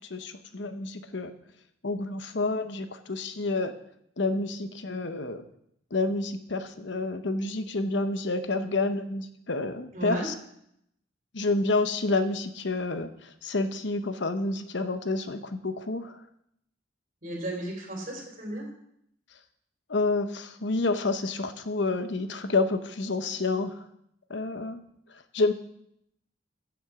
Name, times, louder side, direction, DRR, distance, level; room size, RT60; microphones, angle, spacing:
voice 1, 0.1-1.3 1.8-3.7 4.2-5.4 5.9-10.3 11.3-16.2 19.9-23.8 24.3-24.8 25.3-25.5, left 3 dB, 60° left, 9 dB, 0.9 m, -29 dB
voice 2, 9.9-10.3 17.2-18.7, right 1 dB, 40° right, 1 dB, 3.4 m, -34 dB
15.5 x 7.2 x 4.9 m, 0.74 s
head